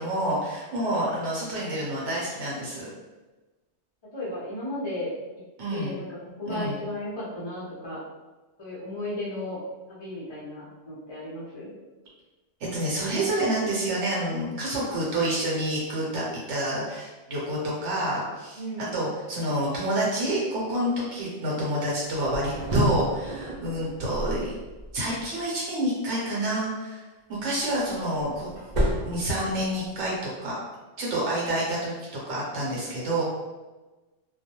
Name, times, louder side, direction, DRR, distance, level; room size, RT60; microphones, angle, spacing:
voice 1, 0.0-2.9 5.6-5.9 6.4-6.7 12.7-18.6 18.9-24.5 24.9-27.0 27.4-28.5 29.0-30.6 31.0-33.2, right 1 dB, 75° right, -5 dB, 1.1 m, -28 dB
voice 2, 4.1-5.1 5.7-8.0 8.6-9.6 9.9-11.7 18.6-19.0, left 1 dB, 30° left, -8 dB, 0.5 m, -34 dB
sound 1, 22.1-25.3 27.5-30.0, equal, 55° right, 0.5 m, -30 dB
2.3 x 2.1 x 2.8 m, 1.2 s
omnidirectional pair, 1.2 m